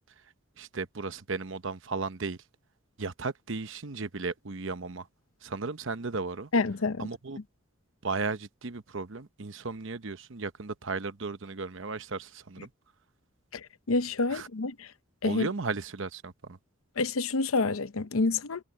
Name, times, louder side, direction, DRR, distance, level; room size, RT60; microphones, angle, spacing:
voice 1, 0.6-2.4 3.0-5.1 5.4-6.5 7.0-7.4 8.0-12.7 14.3-14.5 15.2-16.6, right 4 dB, 65° right, 0.9 m, -35 dB
voice 2, 6.5-7.1 13.5-13.6 13.9-14.9 15.2-15.5 17.0-18.6, left 3 dB, 80° left, 0.7 m, -28 dB
head